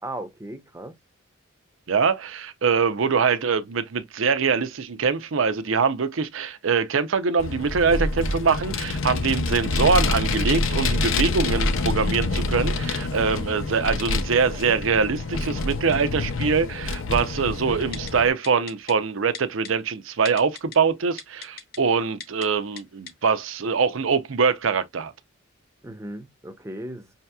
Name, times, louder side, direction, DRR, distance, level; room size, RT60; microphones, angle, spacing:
voice 1, 0.0-1.0 25.8-27.1, right 1 dB, 15° right, 0.6 m, -36 dB
voice 2, 1.9-25.1, right 5 dB, 70° right, 0.6 m, -23 dB
Vehicle, 7.4-18.3, left 3 dB, 65° left, 0.5 m, -26 dB
Typing, 17.9-18.1 18.4-18.9 19.3-19.7 20.3-20.8 21.2-21.8 22.2-22.5 22.8-22.9 23.1-23.2, left 7 dB, 50° left, 0.9 m, -37 dB
5.6 x 2.8 x 2.2 m
head